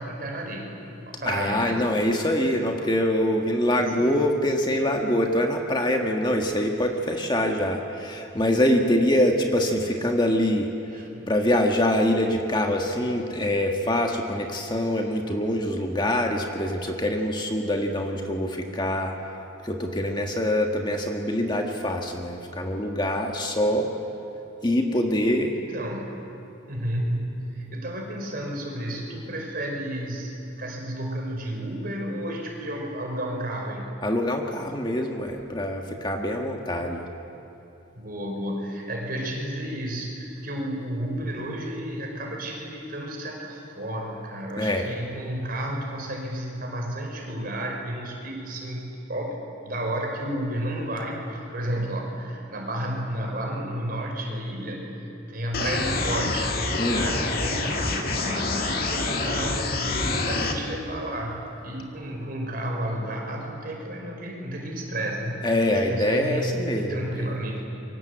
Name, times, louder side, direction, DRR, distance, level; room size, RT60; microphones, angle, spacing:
voice 1, 0.0-1.8 3.7-4.3 10.9-11.3 23.6-23.8 25.7-26.2 26.7-33.9 37.9-56.5 56.9-65.4 65.7-67.6, right 1 dB, 45° right, 0 dB, 5.2 m, -32 dB
voice 2, 1.2-19.1 19.6-23.9 24.6-25.6 34.0-37.0 44.6-44.9 56.8-57.1 65.4-67.3, left 1 dB, 20° left, 2 dB, 1.7 m, -24 dB
sound 1, 55.5-60.5, left 3 dB, 45° left, 2.2 m, -27 dB
27.5 x 24.0 x 8.1 m, 3.0 s
head